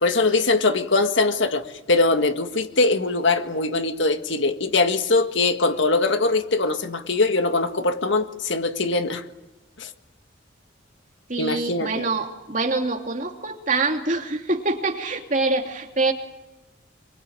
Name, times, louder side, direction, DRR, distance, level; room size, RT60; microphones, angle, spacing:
voice 1, 0.0-9.2 9.8-9.9 11.4-12.0, left 3 dB, 70° left, 1.7 m, -22 dB
voice 2, 11.3-16.1, right 3 dB, 40° right, 2.8 m, -25 dB
25.5 x 23.5 x 8.8 m
head